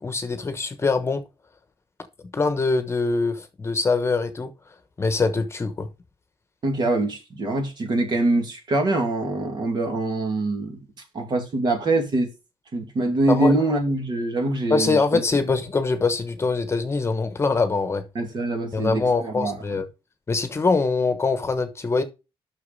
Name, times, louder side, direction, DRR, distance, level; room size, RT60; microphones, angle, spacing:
voice 1, 0.0-1.2 2.3-4.5 5.0-5.9 13.3-13.5 14.7-18.0 18.7-19.9 20.3-22.0, left 4 dB, 30° left, 1.1 m, -23 dB
voice 2, 6.6-10.8 11.1-12.3 12.7-15.2 18.1-19.6, right 2 dB, 50° right, 2.4 m, -24 dB
6.6 x 6.2 x 5.3 m
cardioid pair, 100°, 9 cm